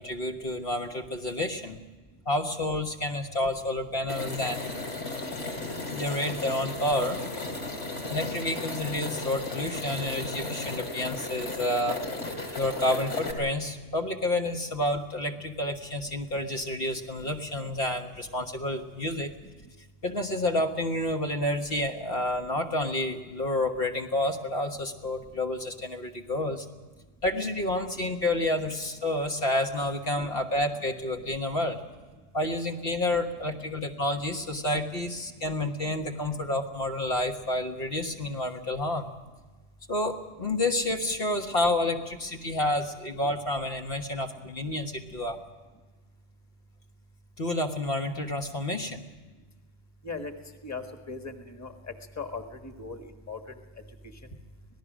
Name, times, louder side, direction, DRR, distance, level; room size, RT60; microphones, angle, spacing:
voice 1, 0.0-1.8 2.2-4.6 5.9-7.2 8.1-12.0 12.5-19.3 20.0-26.6 27.2-31.8 32.3-39.1 39.9-45.4 47.4-49.0, left 1 dB, 55° left, 2 dB, 1.5 m, -29 dB
sound 1, 4.1-13.3, left 2 dB, 85° left, 3.1 m, -35 dB
voice 2, 50.6-51.7 52.2-53.4, left 4 dB, 15° left, 5 dB, 1.5 m, -38 dB
26.0 x 18.5 x 6.2 m, 1.3 s
omnidirectional pair, 1.2 m